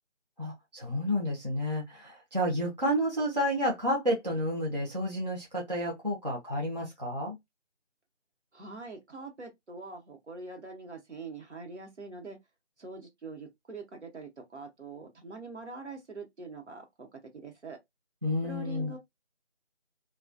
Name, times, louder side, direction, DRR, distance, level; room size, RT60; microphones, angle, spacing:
voice 1, 0.4-7.4 18.2-18.9, equal, 35° right, 0.6 m, -30 dB
voice 2, 8.5-12.4 12.8-17.1 17.3-17.8 18.4-19.0, right 3 dB, 65° right, 1.0 m, -44 dB
2.3 x 2.3 x 2.4 m
figure-of-eight pair, 170°, 36 cm